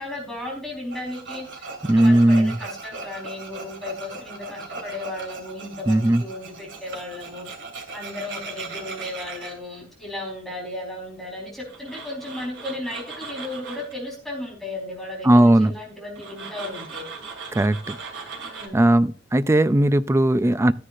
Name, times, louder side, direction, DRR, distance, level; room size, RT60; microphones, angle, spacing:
voice 1, 0.0-7.5 7.9-17.1 18.4-18.9, left 1 dB, ahead, 4.2 m, -35 dB
Tools, 0.9-9.5 11.7-13.9 16.2-18.7, right 4 dB, 70° right, 2.9 m, -38 dB
voice 2, 1.9-2.6 5.9-6.2 15.2-15.7 17.5-18.0 18.7-20.7, right 1 dB, 15° right, 0.4 m, -17 dB
14.5 x 9.9 x 2.5 m
head